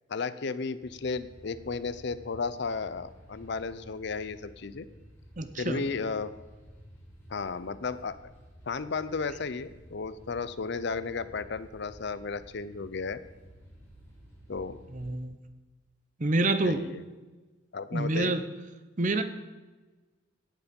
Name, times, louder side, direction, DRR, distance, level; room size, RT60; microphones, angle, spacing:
voice 1, 0.1-4.9 5.6-6.3 7.3-8.2 8.7-13.2 14.5-14.8 16.6-17.0 17.7-18.3, left 4 dB, 55° left, 15 dB, 0.5 m, -34 dB
sound 1, 0.8-15.2, equal, 15° left, 3.7 m, -53 dB
voice 2, 5.4-5.8 14.9-15.4 16.2-16.8 17.9-18.4 19.0-19.2, right 2 dB, 40° right, 9 dB, 0.8 m, -27 dB
17.0 x 7.1 x 5.3 m, 1.3 s
head